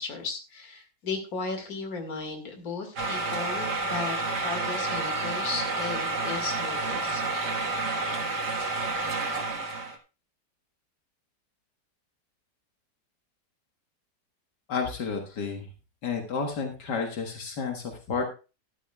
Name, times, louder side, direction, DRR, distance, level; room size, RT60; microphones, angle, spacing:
voice 1, 0.0-7.2, left 4 dB, 60° left, 5 dB, 2.5 m, -35 dB
sound 1, 3.0-10.0, right 3 dB, 80° right, 2.1 m, -30 dB
voice 2, 14.7-15.7 16.0-18.3, left 5 dB, 80° left, 3 dB, 2.1 m, -31 dB
12.5 x 12.5 x 2.3 m, 0.31 s
omnidirectional pair, 1.8 m